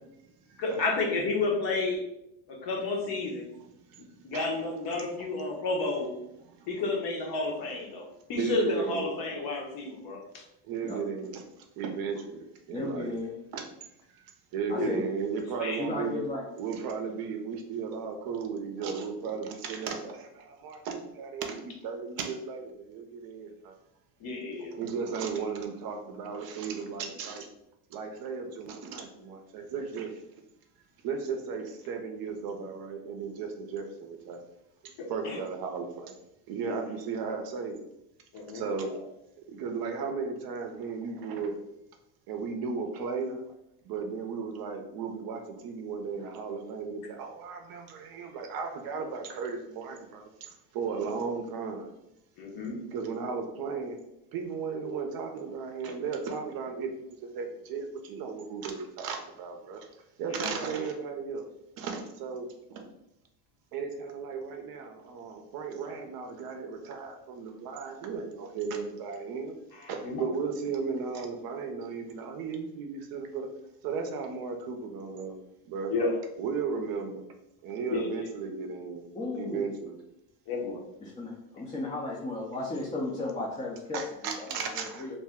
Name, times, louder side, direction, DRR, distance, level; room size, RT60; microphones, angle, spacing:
voice 1, 0.6-2.1 2.5-3.5 4.2-6.1 6.7-10.4 14.7-14.9 15.6-15.8 24.2-24.7 35.2-35.4 36.6-36.8 38.3-39.0 47.7-47.8 52.4-52.8 60.3-60.7 69.7-70.3 75.9-76.1 77.9-78.3 80.5-80.8, left 3 dB, 50° left, 0 dB, 0.9 m, -31 dB
voice 2, 8.4-9.1 10.7-11.4 11.8-13.1 13.5-13.7 14.5-16.2 16.6-23.7 24.7-27.5 27.9-30.1 31.0-34.4 35.1-36.1 36.5-37.8 38.5-38.9 39.5-41.6 42.3-43.4 43.9-50.3 50.7-51.9 52.9-54.0 54.3-59.9 60.2-61.4 61.8-62.9 63.7-69.5 69.9-73.5 73.8-75.4 75.7-75.9 76.4-77.3 77.6-79.0 79.3-80.0 83.9-85.1, right 5 dB, 50° right, 4 dB, 0.6 m, -35 dB
voice 3, 12.7-13.3 14.7-15.0 15.8-16.4 79.1-79.8 81.0-84.4 85.0-85.2, left 2 dB, 15° left, -4 dB, 0.5 m, -34 dB
2.6 x 2.1 x 3.5 m, 0.84 s
supercardioid pair, 90°, 48 cm